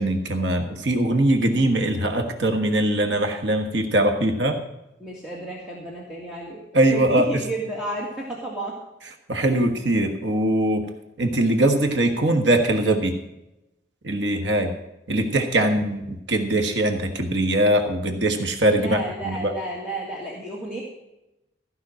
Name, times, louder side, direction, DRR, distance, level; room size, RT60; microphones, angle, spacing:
voice 1, 0.0-4.6 6.7-7.4 9.3-10.9 11.2-13.1 14.0-14.7 15.1-19.5, right 1 dB, 80° right, 5 dB, 1.6 m, -21 dB
voice 2, 5.0-8.8 15.6-15.7 18.8-20.8, right 2 dB, 5° right, -4 dB, 1.8 m, -32 dB
15.0 x 5.8 x 7.5 m, 0.92 s
head